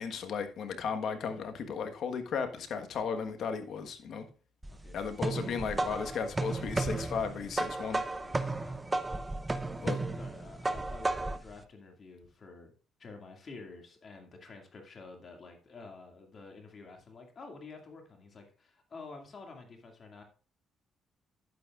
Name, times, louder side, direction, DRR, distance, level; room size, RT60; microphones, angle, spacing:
voice 1, 0.0-4.2 4.9-8.0 9.8-10.0, left 6 dB, 65° left, 7 dB, 1.4 m, -35 dB
sound 1, 4.6-11.5, right 2 dB, 20° right, 0.8 m, -34 dB
voice 2, 4.7-5.1 8.2-9.0 10.2-12.7 13.0-20.2, left 4 dB, 45° left, 3 dB, 2.2 m, -50 dB
11.0 x 9.3 x 2.5 m, 0.37 s
supercardioid pair, 75°, 0 cm